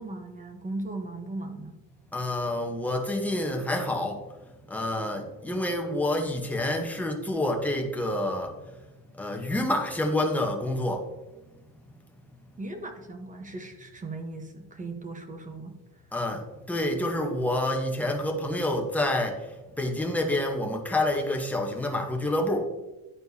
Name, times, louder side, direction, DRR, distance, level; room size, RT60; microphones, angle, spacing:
voice 1, 0.0-1.8 12.6-15.8, right 2 dB, 20° right, 5 dB, 1.0 m, -37 dB
voice 2, 2.1-4.3 4.7-8.6 9.1-11.1 16.1-22.6, left 1 dB, 5° left, 2 dB, 1.0 m, -28 dB
11.0 x 4.4 x 2.7 m, 1.1 s
cardioid pair, 125°, 35 cm